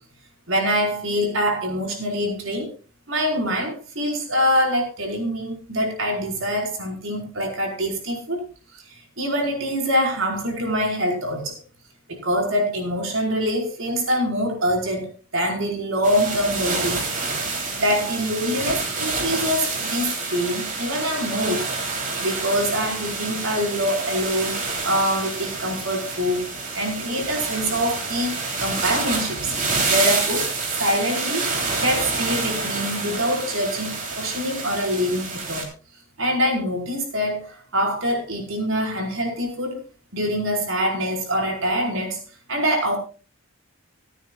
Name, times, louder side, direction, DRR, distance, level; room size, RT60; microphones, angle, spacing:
voice 1, 0.5-2.7 3.1-8.4 8.9-11.6 12.1-17.1 17.8-21.6 22.2-26.5 26.7-29.6 29.9-30.5 30.8-31.4 31.8-35.7 36.2-39.8 40.1-42.2 42.5-43.0, equal, 70° right, 1 dB, 4.7 m, -24 dB
sound 1, 16.0-35.6, right 4 dB, 40° right, 3.2 m, -28 dB
26.0 x 9.1 x 2.4 m, 0.36 s
head